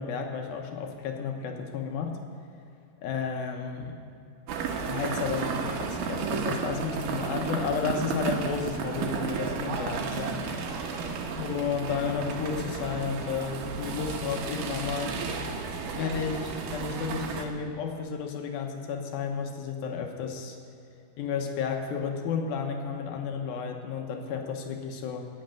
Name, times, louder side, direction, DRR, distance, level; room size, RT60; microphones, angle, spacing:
voice 1, 0.0-2.2 3.0-4.0 4.7-10.5 11.4-15.2 15.9-20.6 21.2-25.3, left 6 dB, 75° left, 3 dB, 2.7 m, -32 dB
sound 1, 4.5-17.5, right 5 dB, 70° right, 2.5 m, -33 dB
14.5 x 6.5 x 9.1 m, 2.6 s
omnidirectional pair, 4.4 m